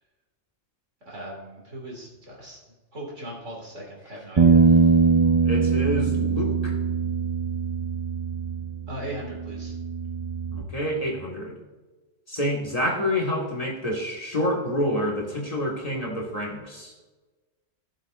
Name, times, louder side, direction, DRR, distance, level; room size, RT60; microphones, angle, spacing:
voice 1, 1.0-2.6 2.9-4.6 8.9-9.7, right 1 dB, 75° right, -2 dB, 2.9 m, -38 dB
sound 1, 4.4-10.6, right 5 dB, 45° right, 0.3 m, -22 dB
voice 2, 5.4-6.7 10.5-11.6 12.3-16.9, equal, 30° left, -2 dB, 2.0 m, -28 dB
16.5 x 7.4 x 2.6 m, 1.2 s
omnidirectional pair, 1.3 m